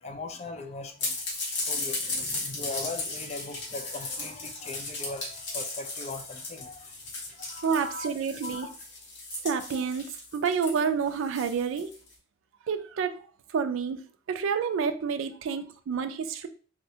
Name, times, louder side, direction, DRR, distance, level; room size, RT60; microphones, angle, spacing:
voice 1, 0.0-7.0 7.3-8.1 8.4-8.7, left 3 dB, 30° left, 0.3 m, -40 dB
sound 1, 1.0-12.1, left 3 dB, 55° left, 1.0 m, -36 dB
voice 2, 7.6-8.7 9.4-11.9 12.7-13.3 13.5-14.0 14.3-16.5, right 6 dB, 70° right, 0.3 m, -29 dB
3.5 x 2.1 x 2.7 m
head